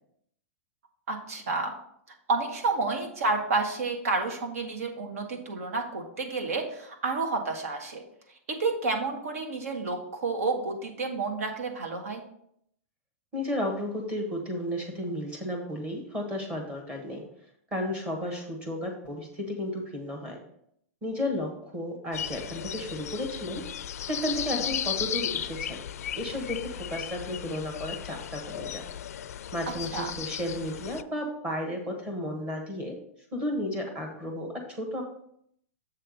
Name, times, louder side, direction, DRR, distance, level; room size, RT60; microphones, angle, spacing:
voice 1, 1.1-1.7 2.3-8.0 8.5-12.2 24.5-24.6 29.9-30.1, right 3 dB, 70° right, 3 dB, 1.7 m, -30 dB
voice 2, 13.3-17.2 17.7-20.4 21.0-23.7 24.1-25.8 26.2-28.9 29.5-33.0 33.3-35.0, left 1 dB, 15° right, 2 dB, 1.2 m, -33 dB
sound 1, 22.1-31.0, left 10 dB, 80° left, 0.4 m, -35 dB
7.6 x 3.3 x 6.4 m, 0.71 s
hypercardioid pair, 165°, 8 cm